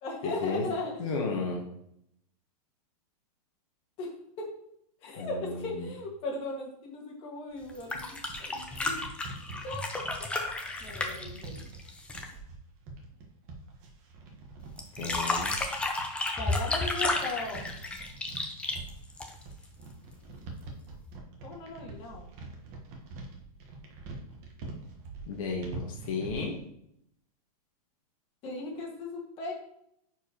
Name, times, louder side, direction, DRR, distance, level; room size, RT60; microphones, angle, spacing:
voice 1, 0.0-1.0 4.0-4.1 4.4-4.5 5.0-9.0 9.6-9.9 10.2-10.3 10.8-11.7 16.4-17.6 21.4-22.3 28.4-29.5, left 3 dB, 30° left, -2 dB, 1.8 m, -37 dB
voice 2, 1.0-1.6 5.2-5.6 15.0-15.6 25.3-26.6, left 4 dB, 60° left, 0 dB, 1.3 m, -33 dB
sound 1, 7.5-26.6, right 3 dB, 35° right, 1.3 m, -45 dB
sound 2, 7.7-12.4 14.8-19.7 21.1-21.2, left 2 dB, 5° left, 0.5 m, -32 dB
9.5 x 4.6 x 2.9 m, 0.72 s
supercardioid pair, 160°, 20 cm